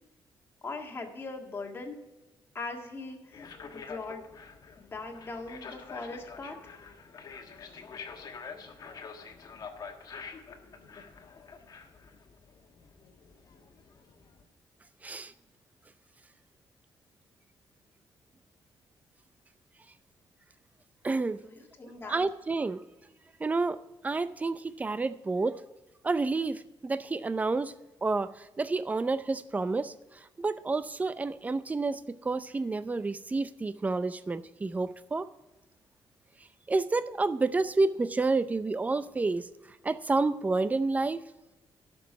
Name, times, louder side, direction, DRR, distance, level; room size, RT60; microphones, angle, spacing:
voice 1, 0.6-2.0 2.5-4.3 4.8-6.7 21.4-22.2, left 3 dB, 25° left, 1 dB, 1.8 m, -40 dB
sound 1, 3.3-14.4, left 5 dB, 50° left, 1.4 m, -47 dB
voice 2, 15.0-15.3 21.0-21.4 21.8-22.8 23.4-23.8 24.0-25.6 26.0-27.7 28.0-29.9 30.4-35.3 36.7-39.5 39.8-41.2, right 3 dB, 15° right, 13 dB, 0.5 m, -29 dB
11.0 x 6.2 x 7.0 m, 1.0 s
cardioid pair, 140°, 9 cm